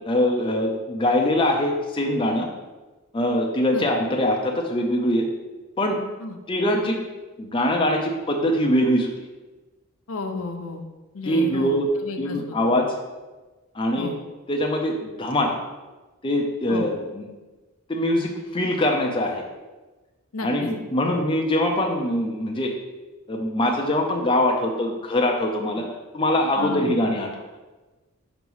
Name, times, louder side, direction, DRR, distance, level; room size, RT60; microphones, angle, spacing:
voice 1, 0.1-2.5 3.1-5.3 5.8-6.0 6.5-7.0 7.4-9.1 11.2-11.9 12.2-13.0 13.7-14.1 14.5-15.5 16.2-17.3 17.9-19.4 20.4-22.7 23.3-25.9 26.1-27.4, left 1 dB, 20° left, 1 dB, 0.5 m, -23 dB
voice 2, 10.1-10.9 11.1-12.8 14.0-14.2 16.7-16.9 20.3-20.7 26.6-27.0, left 3 dB, 70° left, 5 dB, 0.6 m, -33 dB
5.9 x 3.0 x 5.5 m, 1.2 s
head